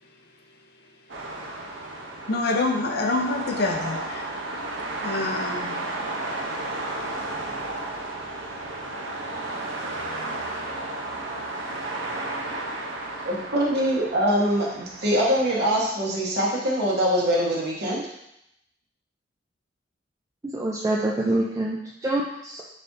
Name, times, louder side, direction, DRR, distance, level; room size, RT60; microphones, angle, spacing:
sound 1, 1.1-15.9, right 2 dB, 85° right, 0.7 m, -33 dB
voice 1, 2.3-4.4 5.0-5.9, left 2 dB, 60° left, 2 dB, 0.5 m, -27 dB
voice 2, 13.2-18.1, equal, 60° right, -4 dB, 1.1 m, -23 dB
voice 3, 20.5-22.6, right 1 dB, 15° right, -4 dB, 0.3 m, -26 dB
4.1 x 3.9 x 2.6 m, 0.81 s
head